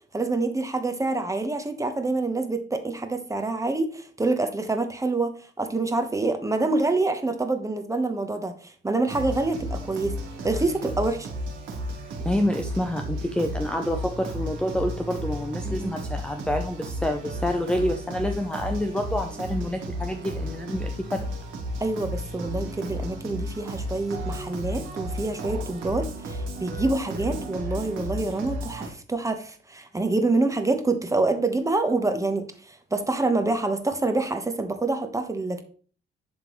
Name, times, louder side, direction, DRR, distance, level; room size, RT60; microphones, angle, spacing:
voice 1, 0.1-10.2 10.4-11.3 15.6-16.0 21.8-35.6, right 2 dB, 15° right, 7 dB, 1.1 m, -26 dB
sound 1, 9.1-28.9, equal, 90° right, 1.7 m, -33 dB
voice 2, 12.2-21.2, left 1 dB, 5° left, 4 dB, 0.6 m, -28 dB
11.0 x 3.7 x 3.1 m, 0.43 s
cardioid pair, 90°, 20 cm